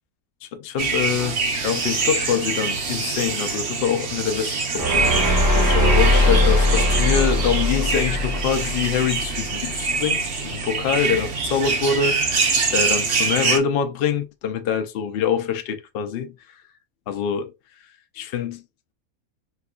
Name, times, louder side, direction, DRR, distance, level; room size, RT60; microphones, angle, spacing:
voice 1, 0.4-5.2 5.5-12.4 12.7-16.4 17.1-17.5 18.1-18.6, left 7 dB, 80° left, 0.5 m, -25 dB
sound 1, 0.8-13.6, right 4 dB, 55° right, 0.9 m, -25 dB
sound 2, 4.8-9.8, left 1 dB, 15° right, 0.6 m, -20 dB
4.4 x 2.2 x 2.3 m
omnidirectional pair, 1.6 m